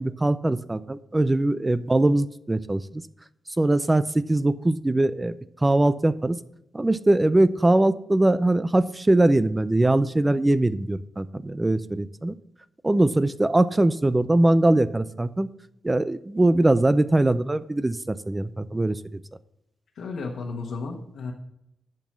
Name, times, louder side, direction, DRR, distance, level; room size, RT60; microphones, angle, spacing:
voice 1, 0.0-3.0 3.6-5.3 5.6-6.4 6.7-12.4 12.8-15.5 15.8-19.2, right 2 dB, 20° right, 14 dB, 0.5 m, -21 dB
voice 2, 19.9-21.3, left 4 dB, 85° left, -1 dB, 1.4 m, -33 dB
10.5 x 6.1 x 6.1 m, 0.81 s
cardioid pair, 90°, 0 cm